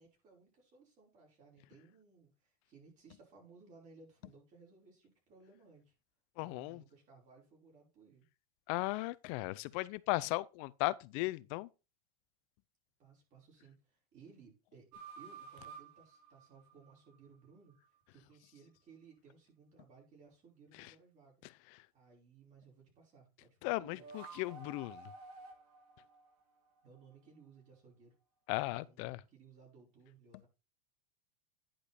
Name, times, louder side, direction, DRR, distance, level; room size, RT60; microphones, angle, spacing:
voice 1, 0.0-5.9 6.4-8.3 13.0-17.7 18.1-21.5 21.9-24.1 26.8-28.2 28.7-30.5, right 5 dB, 40° right, 5.1 m, -61 dB
voice 2, 6.4-6.8 8.7-11.7 20.8-20.9 23.6-25.1 28.5-29.2, left 20 dB, 55° left, 0.6 m, -36 dB
sound 1, 14.9-17.3 23.8-27.1, right 5 dB, 80° right, 2.6 m, -53 dB
10.0 x 5.1 x 4.2 m
supercardioid pair, 135°, 20 cm